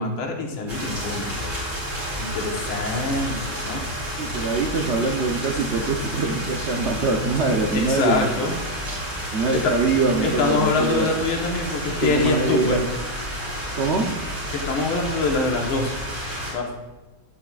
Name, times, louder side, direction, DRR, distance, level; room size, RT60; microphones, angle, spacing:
voice 1, 0.0-1.3 2.2-3.8 7.7-8.5 9.6-9.7 10.2-12.8 14.5-15.9 16.5-16.7, left 3 dB, 80° left, 1 dB, 2.0 m, -24 dB
sound 1, 0.7-16.5, equal, 30° right, 3.4 m, -30 dB
voice 2, 4.2-8.5 9.3-11.1 12.0-12.8 13.7-14.1, right 3 dB, 75° right, 1 dB, 0.6 m, -23 dB
12.5 x 8.5 x 2.4 m, 1.1 s
omnidirectional pair, 2.2 m